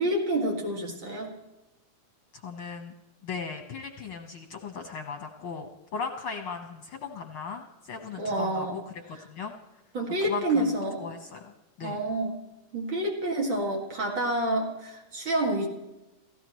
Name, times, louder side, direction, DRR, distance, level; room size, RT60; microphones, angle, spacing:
voice 1, 0.0-1.3 8.2-8.8 9.1-9.2 9.9-11.0 11.8-12.3 12.7-15.7, right 1 dB, 45° right, 0 dB, 2.7 m, -28 dB
voice 2, 2.3-2.9 3.2-8.8 9.3-9.5 10.2-10.7 11.0-11.5 11.8-12.0, left 5 dB, 55° left, 4 dB, 1.7 m, -37 dB
29.0 x 15.5 x 3.1 m, 1.0 s
omnidirectional pair, 3.3 m